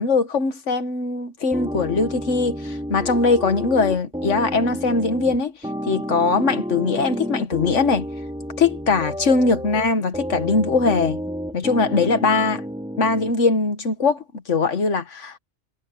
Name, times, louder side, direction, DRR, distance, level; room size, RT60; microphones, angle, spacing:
voice 1, 0.0-5.5 5.9-8.1 8.6-11.2 11.5-12.6 13.0-15.4, left 4 dB, 75° left, 1.8 m, -21 dB
sound 1, 1.5-13.3, equal, 5° right, 3.0 m, -30 dB
omnidirectional pair, 1.3 m